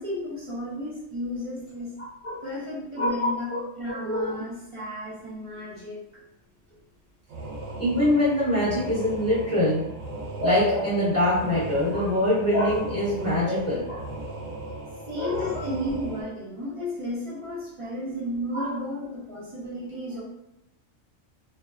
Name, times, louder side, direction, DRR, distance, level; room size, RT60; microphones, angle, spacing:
voice 1, 0.0-2.0 2.4-6.0 15.1-20.2, left 1 dB, 30° right, -8 dB, 0.6 m, -33 dB
voice 2, 3.0-3.6 3.9-4.4 7.8-9.8 10.4-14.2 15.1-15.6 18.5-18.7, left 1 dB, 10° left, -11 dB, 1.0 m, -24 dB
sound 1, 7.3-16.2, right 2 dB, 85° right, 1.0 m, -37 dB
2.6 x 2.1 x 2.3 m, 0.88 s
omnidirectional pair, 1.4 m